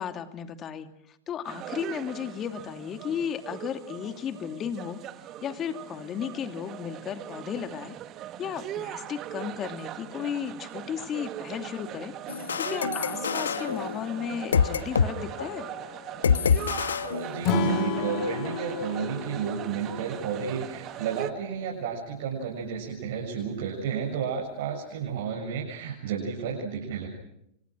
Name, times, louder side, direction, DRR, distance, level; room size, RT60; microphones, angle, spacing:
voice 1, 0.0-5.0 5.4-7.9 8.4-15.7, left 8 dB, 35° left, 7 dB, 2.7 m, -34 dB
sound 1, 1.4-21.3, right 12 dB, 40° right, 1.6 m, -40 dB
sound 2, 12.3-15.1 15.4-15.6 16.2-17.8, left 6 dB, 85° left, 1.1 m, -27 dB
voice 2, 17.1-27.1, right 6 dB, 65° right, -2 dB, 7.1 m, -32 dB
Acoustic guitar / Strum, 17.4-20.7, left 4 dB, 50° left, 2.9 m, -30 dB
30.0 x 25.5 x 6.4 m, 0.78 s
hypercardioid pair, 100°, 0 cm